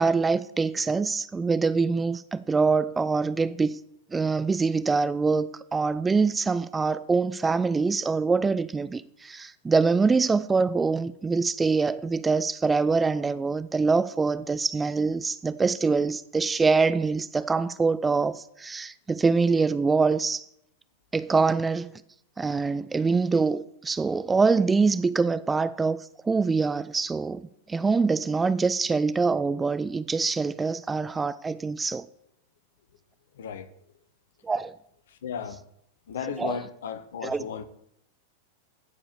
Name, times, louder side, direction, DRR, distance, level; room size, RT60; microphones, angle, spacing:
voice 1, 0.0-3.8 4.1-20.4 21.1-21.9 22.4-32.0 34.4-34.7 36.4-36.6 37.2-37.5, right 4 dB, 15° right, 0.4 m, -24 dB
voice 2, 33.4-33.7 35.1-35.6 36.1-37.6, left 7 dB, 60° left, 1.0 m, -35 dB
14.5 x 4.9 x 6.9 m
figure-of-eight pair, 90°, 0 cm